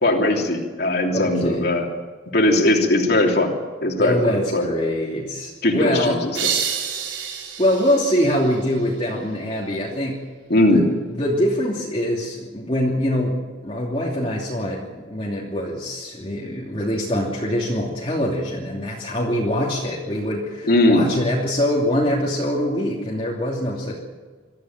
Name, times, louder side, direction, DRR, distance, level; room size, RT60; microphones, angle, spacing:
voice 1, 0.0-1.9 2.3-3.5 3.8-4.7 5.6-6.5 10.5-10.8 20.7-21.1, left 1 dB, 55° left, 1 dB, 3.1 m, -19 dB
voice 2, 1.1-1.7 4.0-6.2 7.6-10.2 10.7-24.0, equal, 30° left, -4 dB, 2.8 m, -24 dB
sound 1, 6.3-9.1, right 7 dB, 80° right, 3.9 m, -29 dB
24.0 x 14.5 x 9.1 m, 1.4 s
head